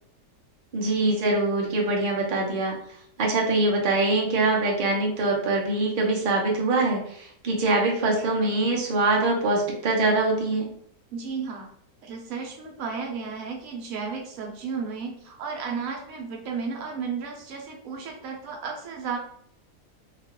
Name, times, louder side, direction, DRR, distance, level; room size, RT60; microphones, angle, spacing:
voice 1, 0.7-2.8 3.2-10.7, right 2 dB, 50° right, -1 dB, 0.7 m, -23 dB
voice 2, 11.1-11.7 12.0-19.2, right 5 dB, 70° right, 1 dB, 1.1 m, -33 dB
2.8 x 2.3 x 2.9 m, 0.65 s
omnidirectional pair, 1.6 m